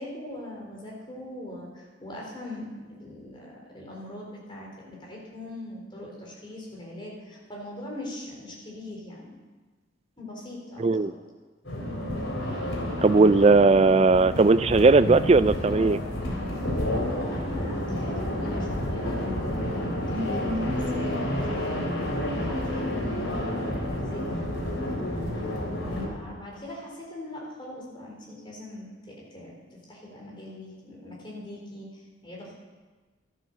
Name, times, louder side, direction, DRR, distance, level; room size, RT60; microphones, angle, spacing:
voice 1, 0.0-9.4 10.2-11.2 17.3-21.9 22.5-25.2 25.9-29.5 29.9-32.5, left 1 dB, 25° left, -3 dB, 4.1 m, -41 dB
voice 2, 10.8-11.1 13.0-16.0, right 3 dB, 30° right, 14 dB, 0.4 m, -18 dB
sound 1, 11.6-26.1, left 1 dB, 80° left, 3.7 m, -30 dB
13.5 x 10.5 x 6.7 m, 1.3 s
head